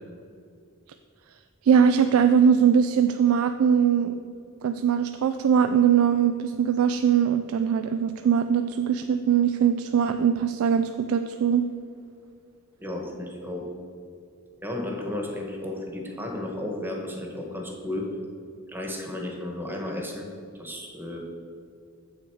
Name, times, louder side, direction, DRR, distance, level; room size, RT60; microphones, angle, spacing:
voice 1, 1.6-4.2 4.6-11.6, right 7 dB, 70° right, 9 dB, 0.3 m, -21 dB
voice 2, 12.8-13.6 14.6-18.1 18.7-20.3 20.6-21.2, left 1 dB, 10° right, 1 dB, 1.2 m, -33 dB
7.7 x 6.4 x 4.6 m, 2.5 s
head